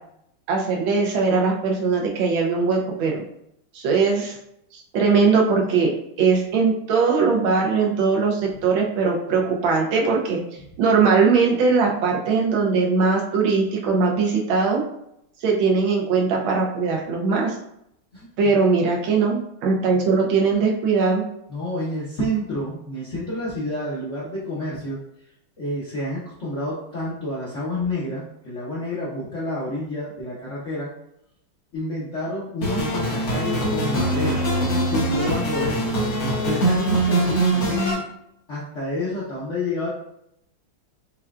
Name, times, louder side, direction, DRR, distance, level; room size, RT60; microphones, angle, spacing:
voice 1, 0.5-3.2 3.7-4.4 4.7-10.4 10.8-14.8 15.4-17.5 18.4-21.3, right 4 dB, 70° right, 0 dB, 1.4 m, -20 dB
voice 2, 18.1-18.5 21.5-25.0 25.6-30.9 31.7-34.5 34.9-35.9 36.2-37.7 38.5-39.9, left 1 dB, 75° left, -7 dB, 0.6 m, -29 dB
sound 1, 32.6-37.9, right 1 dB, 55° left, 1.7 m, -22 dB
5.4 x 2.3 x 2.4 m, 0.77 s
omnidirectional pair, 2.4 m